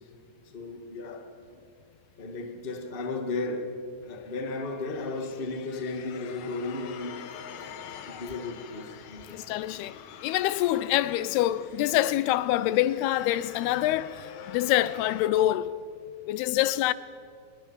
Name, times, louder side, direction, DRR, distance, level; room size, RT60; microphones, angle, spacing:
voice 1, 0.5-1.6 2.2-7.8 8.0-9.4, left 3 dB, 30° left, 0.9 m, -35 dB
sound 1, 4.0-15.3, left 8 dB, 65° left, 1.9 m, -46 dB
voice 2, 9.3-15.7 16.3-16.9, left 14 dB, 90° left, 2.7 m, -26 dB
25.0 x 20.5 x 7.2 m
omnidirectional pair, 4.5 m